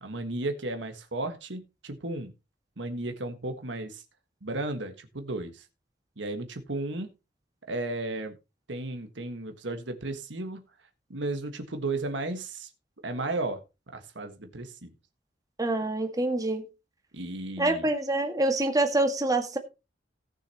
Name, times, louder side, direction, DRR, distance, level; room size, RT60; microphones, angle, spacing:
voice 1, 0.0-2.3 2.8-4.0 4.4-5.7 6.2-7.1 7.7-8.4 8.7-10.6 11.1-12.7 13.0-13.6 13.9-14.9 17.1-17.9, right 2 dB, 75° right, 1.5 m, -34 dB
voice 2, 15.6-16.6 17.6-19.6, right 2 dB, 20° right, 1.7 m, -26 dB
18.0 x 6.6 x 2.9 m
head